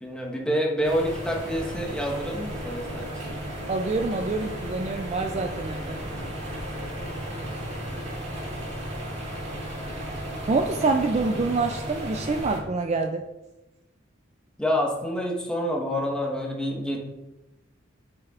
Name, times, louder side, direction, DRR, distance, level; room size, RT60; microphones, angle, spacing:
voice 1, 0.0-3.3 14.6-17.0, equal, 5° left, -1 dB, 1.2 m, -27 dB
sound 1, 0.8-12.6, equal, 60° right, 2.3 m, -34 dB
voice 2, 3.7-6.0 10.5-13.3, right 3 dB, 35° right, 5 dB, 0.3 m, -26 dB
8.7 x 6.6 x 2.4 m, 1.0 s
head